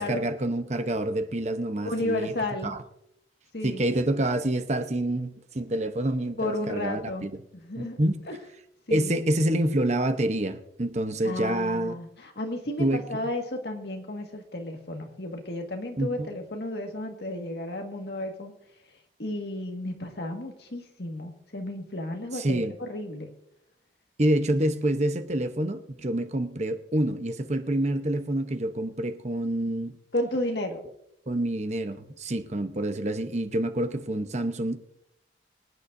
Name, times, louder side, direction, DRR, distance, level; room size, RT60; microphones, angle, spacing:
voice 1, 0.0-2.3 2.6-2.8 3.6-7.3 7.8-8.2 8.9-11.9 12.8-13.0 16.0-16.3 22.3-22.7 24.2-30.0 31.3-34.8, right 1 dB, 40° right, 0.9 m, -27 dB
voice 2, 1.8-2.7 3.5-3.8 6.4-7.3 7.6-8.0 8.3-8.4 8.9-9.1 11.2-18.5 19.2-23.3 30.1-30.8, left 1 dB, 60° left, 1.8 m, -33 dB
24.5 x 9.7 x 2.7 m
head